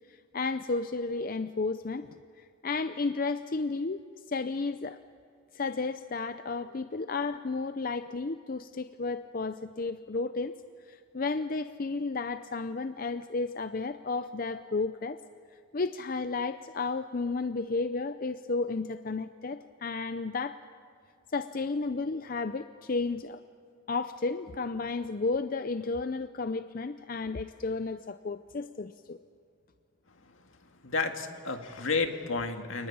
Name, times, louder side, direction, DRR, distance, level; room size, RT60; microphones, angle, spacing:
voice 1, 0.1-4.0 4.3-5.0 5.5-10.5 10.9-15.2 15.7-20.6 21.3-23.4 23.9-29.2, left 3 dB, 45° left, 11 dB, 0.5 m, -33 dB
voice 2, 30.8-32.9, left 4 dB, 75° left, 6 dB, 2.1 m, -31 dB
28.5 x 19.5 x 8.7 m, 2.5 s
head